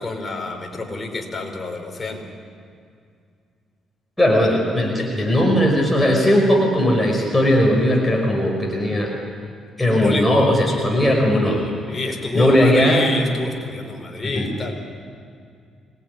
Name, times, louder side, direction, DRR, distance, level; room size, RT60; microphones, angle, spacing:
voice 1, 0.0-2.3 9.9-10.5 11.8-14.8, left 3 dB, 25° left, 2 dB, 4.9 m, -27 dB
voice 2, 4.2-9.1 9.8-11.7 12.3-13.0 14.3-14.5, equal, 10° left, -1 dB, 5.5 m, -18 dB
26.5 x 19.5 x 9.7 m, 2.3 s
cardioid pair, 90°, 0 cm